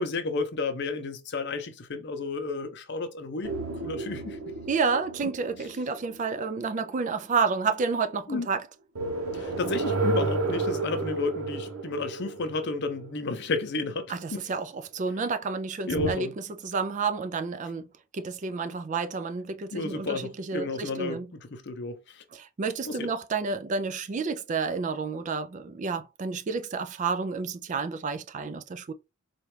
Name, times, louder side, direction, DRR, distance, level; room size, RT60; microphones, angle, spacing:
voice 1, 0.0-3.5 3.8-4.6 8.3-8.5 9.3-14.5 15.9-16.3 19.7-22.2 22.9-23.1, left 3 dB, 55° left, 0.6 m, -32 dB
sound 1, 3.4-6.9 9.0-13.6 15.9-16.1, right 2 dB, 90° right, 0.9 m, -31 dB
voice 2, 4.7-8.7 14.1-16.3 16.6-17.9 18.1-21.3 22.3-28.9, right 5 dB, 35° right, 0.4 m, -30 dB
4.3 x 2.4 x 3.2 m
head